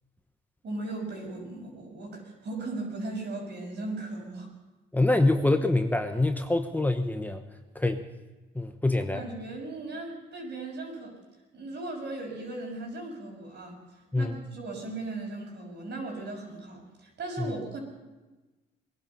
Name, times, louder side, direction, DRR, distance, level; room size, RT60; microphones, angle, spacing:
voice 1, 0.6-4.5 9.0-11.1 11.5-13.8 14.1-17.8, right 2 dB, 60° right, 0 dB, 6.1 m, -37 dB
voice 2, 4.9-7.4 7.7-8.0 8.5-9.2 14.1-14.4 17.4-17.5, left 2 dB, 10° left, 6 dB, 1.0 m, -25 dB
21.0 x 11.0 x 5.5 m, 1.1 s
cardioid pair, 90°, 20 cm